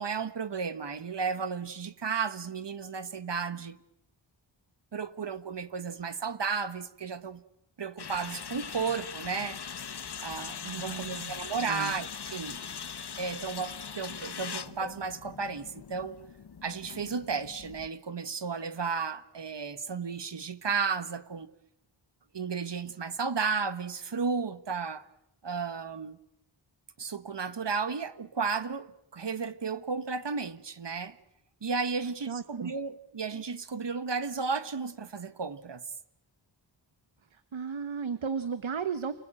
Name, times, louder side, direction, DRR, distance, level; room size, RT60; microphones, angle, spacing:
voice 1, 0.0-3.8 4.9-7.4 7.8-9.6 10.2-12.6 13.2-16.2 16.6-21.5 22.3-25.1 25.4-26.2 27.0-31.1 31.6-35.8, right 5 dB, 60° right, 1.5 m, -33 dB
sound 1, 8.0-17.9, left 7 dB, 55° left, 1.1 m, -41 dB
voice 2, 10.6-11.3 11.6-11.9 32.0-32.7 37.3-39.1, right 6 dB, 75° right, 1.3 m, -35 dB
29.5 x 20.5 x 9.0 m
wide cardioid pair, 90°, 47 cm